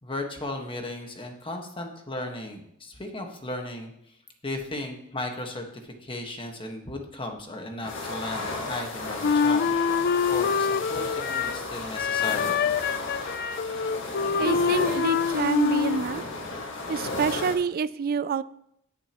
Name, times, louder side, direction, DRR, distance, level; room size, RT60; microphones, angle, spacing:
voice 1, 0.0-3.9 4.4-9.7 10.3-12.6, left 2 dB, 25° left, 3 dB, 1.5 m, -36 dB
sound 1, 7.8-17.5, left 2 dB, 65° left, 1.8 m, -34 dB
Wind instrument woodwind instrument, 9.2-11.6 12.0-16.0, left 6 dB, 50° left, 0.4 m, -25 dB
voice 2, 14.4-16.2 16.9-18.4, right 6 dB, 45° right, 16 dB, 0.3 m, -27 dB
20.0 x 6.8 x 3.0 m, 0.75 s
head